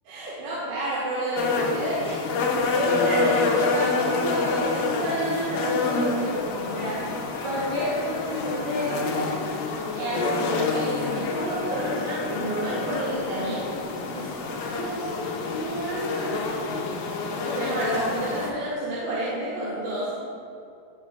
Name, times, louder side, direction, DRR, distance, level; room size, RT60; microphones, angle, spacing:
voice 1, 0.1-2.2 2.7-7.0 7.4-9.4 10.0-13.7 14.1-14.3 14.7-15.1 15.5-16.6 17.4-20.1, right 1 dB, 75° right, -10 dB, 4.0 m, -30 dB
sound 1, 1.4-18.5, left 4 dB, 75° left, 2.1 m, -27 dB
18.5 x 6.6 x 2.4 m, 2.4 s
omnidirectional pair, 4.9 m